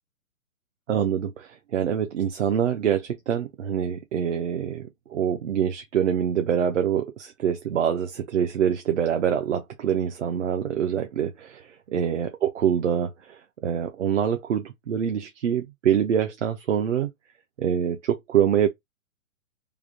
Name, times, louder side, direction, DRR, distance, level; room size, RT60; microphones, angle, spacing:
voice 1, 0.9-11.6 11.9-17.1 17.6-18.7, right 8 dB, 60° right, 0.6 m, -25 dB
3.4 x 2.2 x 3.5 m
hypercardioid pair, 170°, 42 cm